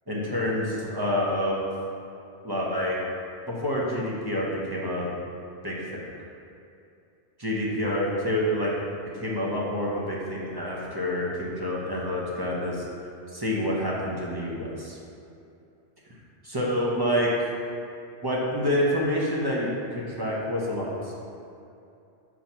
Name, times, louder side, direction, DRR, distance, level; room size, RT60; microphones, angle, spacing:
voice 1, 0.1-1.6 2.4-3.0 3.5-5.1 5.6-6.0 7.4-8.7 9.1-12.8 13.3-15.0 16.4-17.6 18.2-21.2, left 1 dB, 20° right, -5 dB, 0.9 m, -27 dB
4.6 x 4.5 x 5.6 m, 2.6 s
omnidirectional pair, 1.2 m